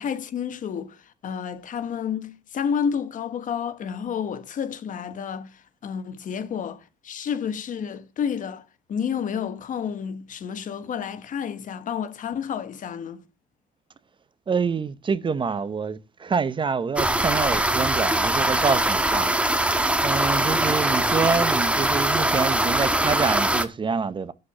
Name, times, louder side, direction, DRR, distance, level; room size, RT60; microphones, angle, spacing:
voice 1, 0.0-8.6 8.9-13.2, left 7 dB, 50° left, 1.3 m, -30 dB
voice 2, 14.5-19.3 20.0-24.3, right 5 dB, 30° right, 0.8 m, -26 dB
sound 1, 17.0-23.7, right 1 dB, 5° right, 1.2 m, -22 dB
11.5 x 4.7 x 7.3 m
cardioid pair, 110°, 17 cm